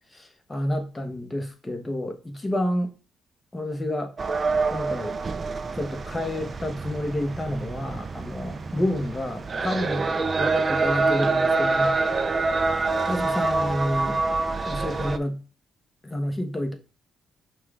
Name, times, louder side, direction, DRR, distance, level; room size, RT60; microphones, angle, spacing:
voice 1, 0.1-2.9 3.5-4.1 4.7-5.2 5.7-12.0 13.0-14.2 14.6-15.4 16.0-16.7, left 1 dB, 20° left, 0.9 m, -29 dB
sound 1, 4.2-15.2, right 3 dB, 35° right, 0.4 m, -26 dB
5.7 x 2.3 x 3.4 m
cardioid pair, 90°, 0 cm